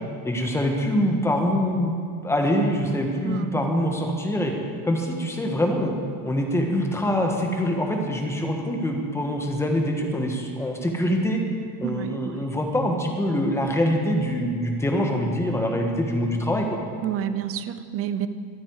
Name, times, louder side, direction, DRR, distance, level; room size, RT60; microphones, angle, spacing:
voice 1, 0.2-1.9 2.2-4.5 4.8-5.9 6.2-11.4 11.8-16.8, equal, 5° left, 2 dB, 1.6 m, -24 dB
voice 2, 3.2-3.6 11.8-12.4 17.0-18.3, right 10 dB, 30° right, 12 dB, 0.6 m, -29 dB
24.5 x 8.7 x 4.8 m, 2.2 s
supercardioid pair, 150°, 45 cm